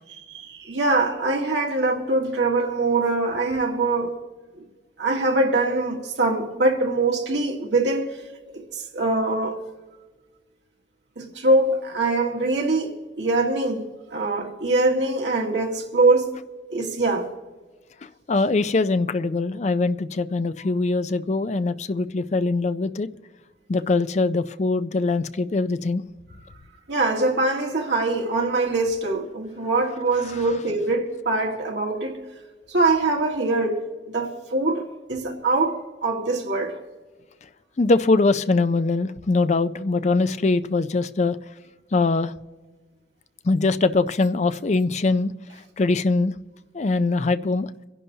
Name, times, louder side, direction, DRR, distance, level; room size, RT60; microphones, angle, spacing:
voice 1, 0.3-4.2 5.0-8.2 8.5-9.6 11.2-16.3 16.7-17.3 26.9-32.2 32.7-36.8, right 2 dB, 75° right, 1.8 m, -23 dB
voice 2, 18.3-23.1 23.7-26.0 30.3-30.4 37.8-41.4 41.9-42.3 43.4-45.3 45.8-46.3 46.7-47.7, left 3 dB, 40° left, 0.4 m, -22 dB
24.5 x 11.0 x 2.8 m
head